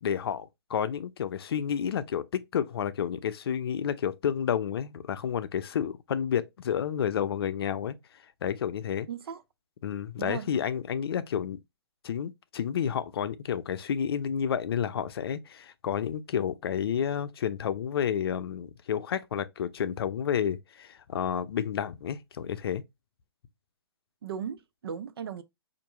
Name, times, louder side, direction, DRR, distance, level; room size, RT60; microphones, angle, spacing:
voice 1, 0.0-8.0 8.4-9.1 9.8-11.6 12.0-22.8, left 8 dB, 70° left, 0.5 m, -30 dB
voice 2, 9.1-9.4 10.2-10.5 24.2-25.4, right 7 dB, 70° right, 0.6 m, -36 dB
4.5 x 2.6 x 2.9 m
hypercardioid pair, 145°, 13 cm